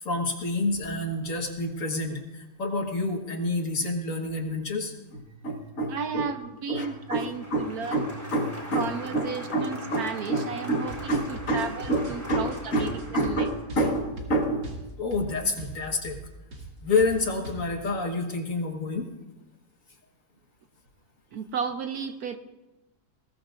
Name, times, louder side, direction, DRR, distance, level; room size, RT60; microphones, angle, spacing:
voice 1, 0.0-6.3 6.7-14.7 15.0-16.2 16.8-19.1, left 1 dB, 50° left, 2 dB, 1.8 m, -28 dB
voice 2, 5.9-8.1 8.7-12.9 13.2-13.5 21.3-22.4, right 6 dB, 65° right, 8 dB, 1.1 m, -34 dB
Applause, 6.9-13.9, equal, 10° right, 3.6 m, -42 dB
sound 1, 10.7-15.3 15.6-15.8 16.0-16.2 16.5-16.7 17.0-17.7, right 1 dB, 90° right, 2.9 m, -40 dB
20.5 x 17.0 x 2.5 m, 1.0 s
omnidirectional pair, 1.9 m